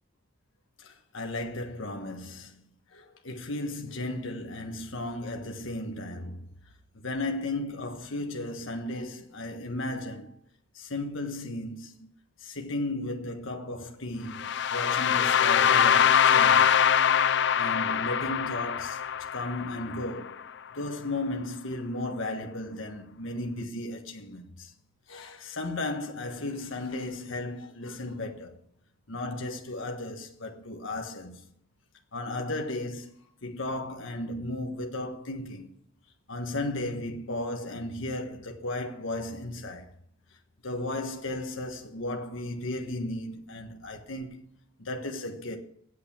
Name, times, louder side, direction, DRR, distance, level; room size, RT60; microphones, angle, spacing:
voice 1, 0.8-6.5 6.9-10.3 10.7-12.1 12.4-16.8 17.5-19.0 19.3-20.4 20.7-24.7 25.1-28.6 29.1-31.4 32.1-33.1 33.4-35.7 36.3-39.9 40.6-44.4 44.8-45.6, left 2 dB, 75° left, 1.4 m, -35 dB
sound 1, 14.3-20.3, left 8 dB, 55° left, 0.4 m, -23 dB
8.4 x 8.0 x 8.7 m
head